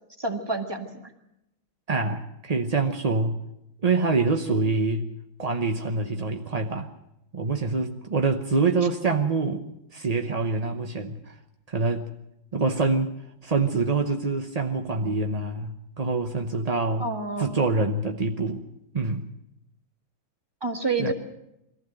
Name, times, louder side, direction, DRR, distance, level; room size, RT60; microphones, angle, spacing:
voice 1, 0.2-1.1 17.0-17.5 20.6-21.1, right 3 dB, 15° right, 5 dB, 1.6 m, -28 dB
voice 2, 1.9-3.4 3.8-5.1 5.4-6.9 7.3-11.3 11.7-12.1 12.5-13.1 13.4-17.1 17.4-18.6 18.9-19.3 21.0-21.1, right 3 dB, 40° right, 3 dB, 0.5 m, -25 dB
22.0 x 15.0 x 7.8 m, 0.86 s
omnidirectional pair, 2.1 m